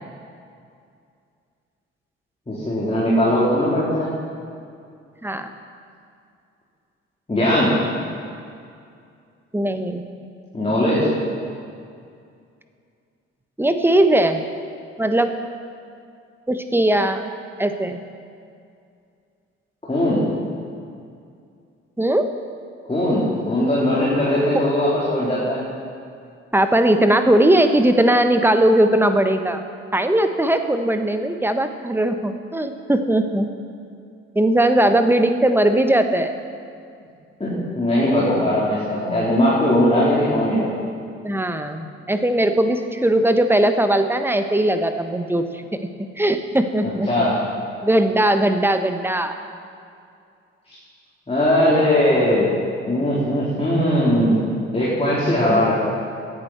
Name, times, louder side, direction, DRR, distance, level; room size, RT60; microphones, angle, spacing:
voice 1, 2.5-4.1 7.3-7.7 10.5-11.1 19.9-20.2 22.9-25.6 37.4-40.7 47.1-47.4 51.3-52.5 52.9-54.3 54.7-55.7, left 1 dB, 15° left, -8 dB, 4.0 m, -19 dB
voice 2, 9.5-10.0 13.6-14.4 15.0-15.3 16.5-17.3 17.6-18.0 22.0-22.3 26.5-29.6 29.9-33.5 34.3-36.3 41.2-45.8 46.2-47.3 47.8-49.4 55.5-55.7, right 1 dB, 5° right, 8 dB, 1.2 m, -19 dB
17.0 x 11.0 x 4.5 m, 2.4 s
figure-of-eight pair, 45°, 34 cm